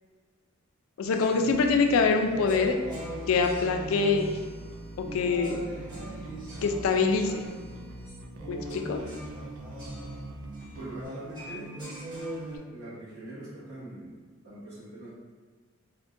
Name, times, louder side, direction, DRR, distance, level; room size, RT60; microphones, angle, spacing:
voice 1, 1.0-2.8 3.3-4.3 5.0-5.6 6.6-7.4 8.5-9.0, left 4 dB, 85° left, 5 dB, 0.3 m, -24 dB
sound 1, 1.1-12.6, right 1 dB, 20° right, 1.1 m, -41 dB
Bass guitar, 1.5-11.1, right 2 dB, 90° right, 0.4 m, -44 dB
voice 2, 10.7-11.8 12.7-15.1, right 1 dB, 50° right, -12 dB, 1.2 m, -43 dB
3.5 x 2.1 x 2.5 m, 1.5 s
head